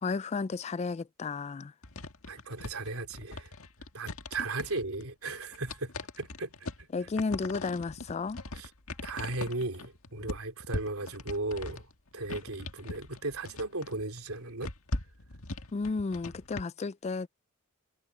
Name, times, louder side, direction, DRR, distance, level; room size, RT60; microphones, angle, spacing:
voice 1, 0.0-1.7 6.9-8.4 15.7-17.3, left 4 dB, 30° left, 0.3 m, -33 dB
sound 1, 1.8-16.6, left 2 dB, 75° left, 1.8 m, -41 dB
voice 2, 2.3-3.5 3.9-6.9 8.5-8.7 9.0-14.7, right 2 dB, 80° right, 3.5 m, -36 dB
head